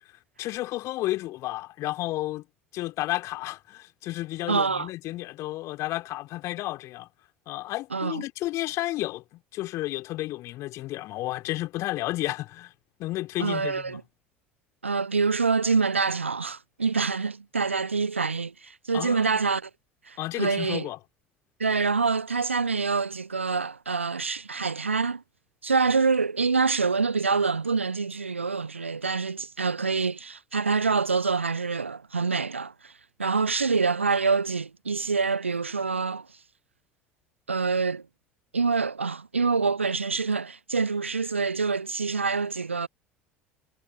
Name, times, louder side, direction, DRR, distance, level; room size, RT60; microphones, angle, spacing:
voice 1, 0.4-2.4 2.7-7.1 7.5-12.7 13.0-14.0 18.9-19.4 20.2-21.0, left 17 dB, 50° left, 4.3 m, -32 dB
voice 2, 4.5-4.9 7.9-8.2 13.4-14.0 14.8-19.7 20.1-20.9 21.6-25.2 25.6-32.9 33.2-36.3 37.5-38.0 38.5-42.9, right 4 dB, 85° right, 0.7 m, -26 dB
figure-of-eight pair, 65°, 6 cm